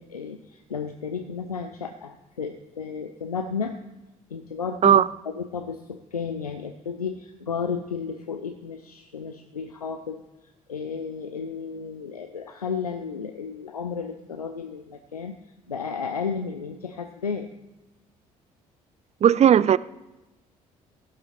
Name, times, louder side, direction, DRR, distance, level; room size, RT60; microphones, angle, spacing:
voice 1, 0.0-3.8 4.3-10.2 10.7-15.4 15.7-17.5, left 6 dB, 90° left, 0.5 m, -33 dB
voice 2, 19.2-19.8, right 9 dB, 35° right, 0.5 m, -16 dB
16.5 x 7.9 x 4.3 m
figure-of-eight pair, 50°, 19 cm